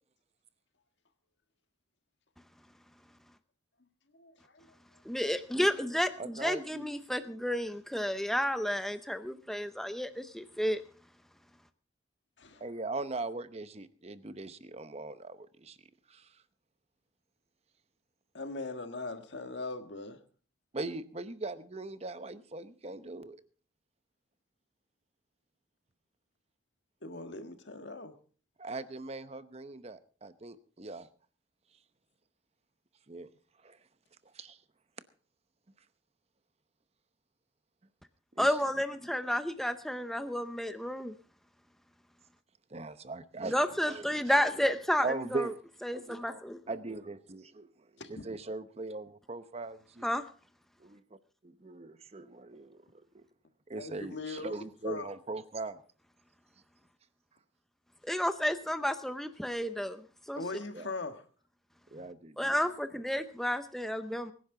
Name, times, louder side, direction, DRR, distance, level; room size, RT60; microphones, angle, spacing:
voice 1, 4.1-4.7 12.4-12.6 18.3-20.2 27.0-28.1 48.0-48.3 53.7-55.1 60.3-61.2 61.9-62.1, left 3 dB, 70° left, 1.6 m, -40 dB
voice 2, 5.1-10.8 38.4-41.2 43.5-45.1 45.3-45.5 45.8-46.6 50.0-50.2 58.0-60.0 60.3-60.4 62.4-64.3, equal, ahead, 0.6 m, -31 dB
voice 3, 6.2-6.9 12.6-15.8 16.1-16.3 20.7-23.4 28.6-31.1 33.1-33.3 33.6-33.8 34.3-34.6 38.3-38.8 42.7-44.7 45.0-45.6 45.9-46.4 46.7-50.1 50.8-51.0 51.4-53.2 53.7-55.8 60.7-60.9 61.9-62.6 62.9-63.0, right 3 dB, 35° right, 0.8 m, -40 dB
23.5 x 10.5 x 3.8 m
head